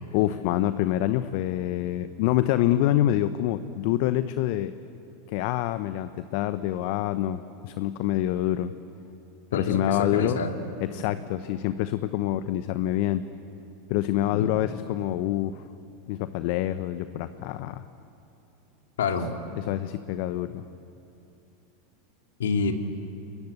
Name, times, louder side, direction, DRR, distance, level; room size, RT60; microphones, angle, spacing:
voice 1, 0.1-4.7 5.3-8.7 9.5-10.4 10.8-13.2 13.9-15.6 16.1-17.8 19.5-20.6, left 13 dB, 55° left, 12 dB, 0.9 m, -26 dB
voice 2, 9.5-10.5 14.3-14.5 19.0-19.3 22.4-22.7, left 5 dB, 75° left, 4 dB, 2.6 m, -27 dB
30.0 x 21.5 x 8.3 m, 2.8 s
hypercardioid pair, 85°, 0 cm